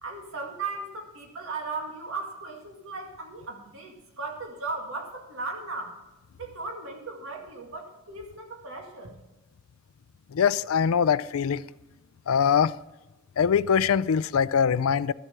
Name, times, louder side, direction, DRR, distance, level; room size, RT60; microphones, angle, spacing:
voice 1, 0.0-6.0 6.4-9.1, right 3 dB, 70° right, 2.0 m, -37 dB
voice 2, 10.3-11.6 12.3-12.7 13.4-15.1, left 7 dB, 80° left, 0.4 m, -22 dB
13.0 x 7.6 x 6.6 m
head